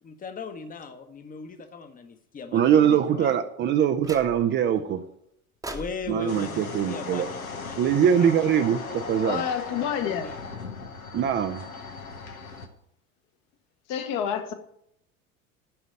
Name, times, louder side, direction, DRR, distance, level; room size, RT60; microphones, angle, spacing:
voice 1, 0.0-3.3 5.7-8.3 8.9-10.4, left 5 dB, 20° left, 9 dB, 1.0 m, -39 dB
voice 2, 2.5-5.0 6.1-7.3 7.8-8.8 9.1-9.4 11.1-11.6, right 9 dB, 25° right, 8 dB, 0.6 m, -22 dB
sound 1, 4.0-4.7 5.6-7.9, right 2 dB, 10° right, 1.0 m, -43 dB
sound 2, 6.3-12.7, left 4 dB, 85° left, 1.0 m, -38 dB
voice 3, 9.2-10.3 13.9-14.5, left 8 dB, 45° left, 7 dB, 1.2 m, -28 dB
11.5 x 4.0 x 7.7 m, 0.76 s
figure-of-eight pair, 70°, 41 cm